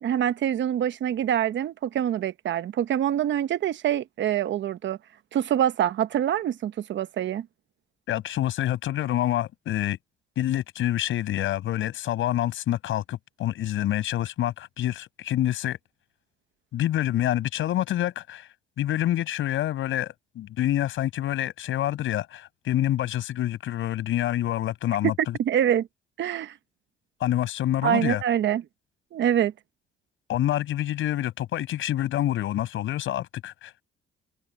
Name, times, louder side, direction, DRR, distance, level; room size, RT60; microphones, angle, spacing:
voice 1, 0.0-5.0 5.3-7.5 25.4-25.9 26.2-26.6 27.8-28.6 29.1-29.5, right 10 dB, 65° right, 1.0 m, -25 dB
voice 2, 8.1-10.0 10.4-15.8 16.7-18.5 18.8-25.4 27.2-28.2 30.3-33.7, left 13 dB, 80° left, 6.6 m, -27 dB
cardioid pair, 90°, 20 cm